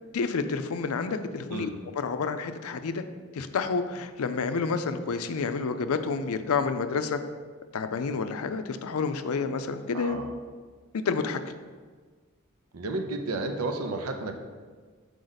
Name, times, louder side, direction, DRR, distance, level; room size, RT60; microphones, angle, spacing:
voice 1, 0.1-1.7 2.0-3.0 3.3-7.2 7.7-10.2 10.9-11.4, left 5 dB, 80° left, 9 dB, 0.5 m, -29 dB
voice 2, 9.9-10.3 12.7-14.4, right 2 dB, 85° right, 5 dB, 0.7 m, -32 dB
6.4 x 4.9 x 4.0 m, 1.5 s
head